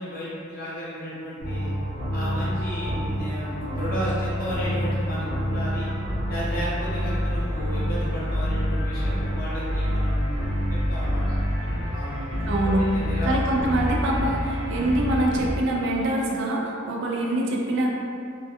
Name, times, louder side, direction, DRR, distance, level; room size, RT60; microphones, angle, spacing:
voice 1, 0.0-1.7 2.1-5.9 6.3-11.4 11.9-13.3, equal, 45° left, -9 dB, 0.8 m, -33 dB
sound 1, 1.4-15.5, equal, 40° right, 0.8 m, -27 dB
voice 2, 12.5-12.9 13.2-17.9, right 1 dB, 60° right, -1 dB, 0.3 m, -24 dB
2.2 x 2.2 x 2.8 m, 2.4 s
head